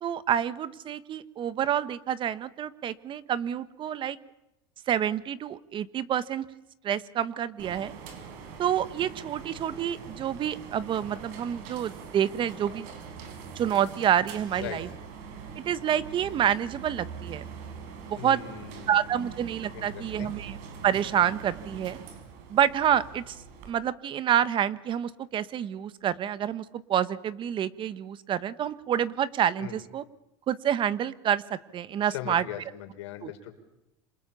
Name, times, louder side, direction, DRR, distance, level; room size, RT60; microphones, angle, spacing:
voice 1, 0.0-4.2 4.9-6.4 6.8-7.9 8.6-12.9 13.5-14.9 15.5-17.4 18.1-18.4 18.9-20.6 20.8-22.0 22.5-23.4 23.6-30.0 30.5-32.4 33.2-33.3, right 10 dB, 35° right, 15 dB, 1.4 m, -28 dB
sound 1, 7.6-23.7, right 6 dB, 65° right, 5.4 m, -43 dB
voice 2, 18.2-19.3 19.7-20.3 29.6-29.8 32.1-33.6, left 12 dB, 90° left, 7 dB, 4.4 m, -40 dB
27.5 x 27.0 x 7.1 m, 0.88 s
supercardioid pair, 130°, 14 cm